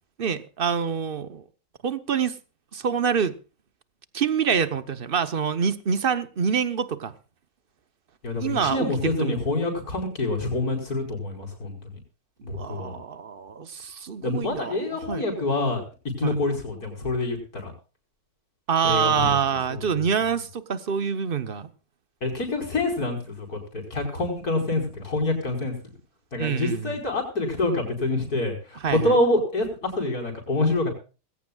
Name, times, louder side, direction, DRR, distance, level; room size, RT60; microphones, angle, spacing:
voice 1, 0.2-1.4 1.8-2.4 2.7-3.4 4.1-7.1 8.4-9.4 12.4-15.2 16.2-16.4 18.7-21.7 26.4-27.0 28.8-29.2, right 7 dB, 40° right, 1.0 m, -26 dB
voice 2, 8.2-11.8 12.4-13.0 14.2-15.8 16.2-17.7 18.8-19.4 19.9-20.0 22.2-25.7 26.3-30.9, left 2 dB, 55° left, 5.5 m, -26 dB
20.5 x 17.0 x 2.4 m
omnidirectional pair, 1.9 m